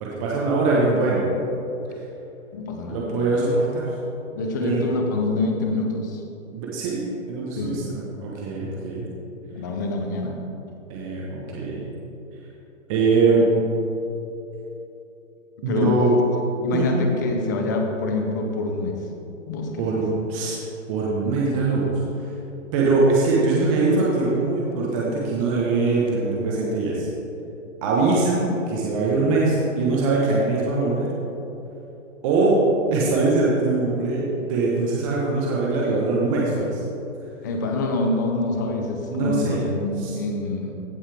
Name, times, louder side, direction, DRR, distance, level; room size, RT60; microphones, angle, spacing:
voice 1, 0.0-1.3 2.9-3.9 4.6-4.8 6.5-9.1 10.9-11.8 12.9-13.5 15.6-16.1 16.7-16.9 19.8-20.6 20.9-21.9 22.7-27.1 27.8-31.1 32.2-32.5 32.9-36.8 39.1-39.6 40.0-40.1, right 3 dB, 25° right, -5 dB, 1.1 m, -22 dB
voice 2, 2.5-3.1 4.4-6.2 7.6-7.8 9.5-10.4 15.7-15.9 16.6-19.0 19.5-20.0 37.4-40.7, left 3 dB, 15° left, 2 dB, 0.5 m, -26 dB
15.5 x 5.5 x 3.4 m, 3.0 s
hypercardioid pair, 155°, 38 cm